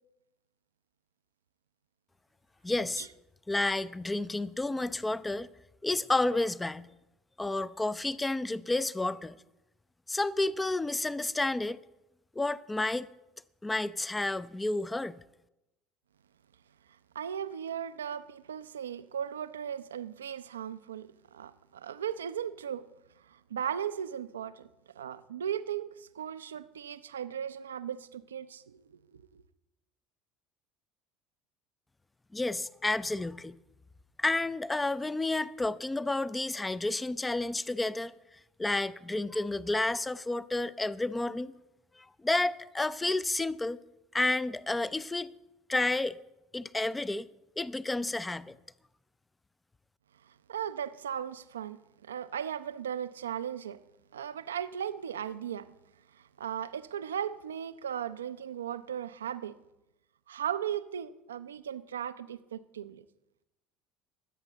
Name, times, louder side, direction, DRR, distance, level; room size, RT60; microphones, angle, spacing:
voice 1, 2.6-3.1 3.5-5.5 5.8-6.9 7.4-9.4 10.1-11.8 12.4-13.1 13.6-15.1 32.3-33.5 34.2-38.1 38.6-41.5 42.0-43.8 44.1-45.3 45.7-46.2 46.5-47.3 47.6-48.6, left 2 dB, 10° left, 0.5 m, -30 dB
voice 2, 17.1-22.9 23.3-24.7 25.0-28.8 29.1-29.4 50.5-53.8 54.1-55.7 56.2-59.6 60.3-63.0, right 9 dB, 75° right, 0.5 m, -37 dB
23.0 x 8.8 x 4.1 m
figure-of-eight pair, 65°, 0 cm